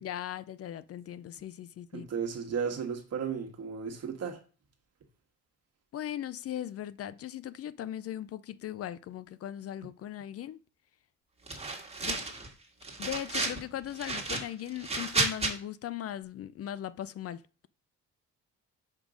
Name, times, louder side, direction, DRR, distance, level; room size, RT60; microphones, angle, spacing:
voice 1, 0.0-2.1 5.9-10.6 12.0-12.3 13.0-17.7, left 11 dB, 50° left, 0.4 m, -39 dB
voice 2, 1.9-4.4, right 7 dB, 55° right, 1.6 m, -34 dB
sound 1, 11.5-12.5 12.8-13.6 14.0-15.5, right 3 dB, 20° right, 1.7 m, -32 dB
5.3 x 5.1 x 5.1 m
cardioid pair, 90°, 30 cm